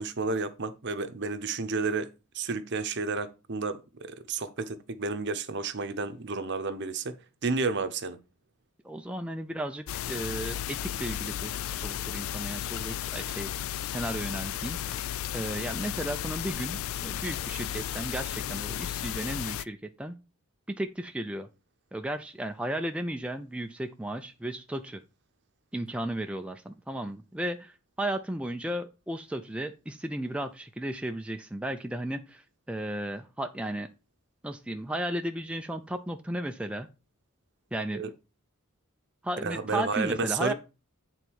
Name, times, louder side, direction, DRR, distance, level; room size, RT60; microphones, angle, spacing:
voice 1, 0.0-2.1 2.3-8.2 37.9-38.1 39.4-40.5, right 4 dB, 50° right, 0.8 m, -31 dB
voice 2, 8.8-13.5 13.8-15.0 15.3-20.2 20.7-21.5 21.9-25.0 25.7-33.9 34.4-36.9 37.7-38.0 39.2-40.5, right 1 dB, 5° right, 0.4 m, -34 dB
sound 1, 9.9-19.6, left 11 dB, 65° left, 0.3 m, -34 dB
sound 2, 12.6-12.9 14.9-15.1 17.2-17.5, left 6 dB, 85° left, 1.0 m, -47 dB
8.9 x 3.9 x 4.6 m
head